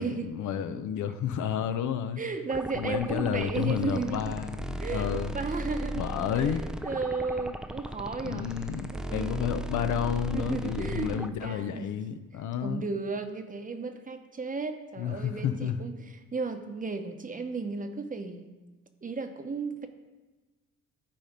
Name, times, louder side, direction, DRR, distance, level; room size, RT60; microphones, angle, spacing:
voice 1, 0.0-2.2 2.7-5.3 5.9-6.6 8.2-12.8 15.0-15.8, left 8 dB, 75° left, 10 dB, 0.6 m, -31 dB
voice 2, 2.2-4.4 4.8-6.0 6.4-8.5 8.9-9.4 10.3-11.9 12.6-18.5 19.0-19.9, right 4 dB, 25° right, 7 dB, 0.8 m, -34 dB
sound 1, 2.5-11.3, right 1 dB, ahead, 0.3 m, -37 dB
11.5 x 4.3 x 5.0 m, 1.2 s
cardioid pair, 90°, 30 cm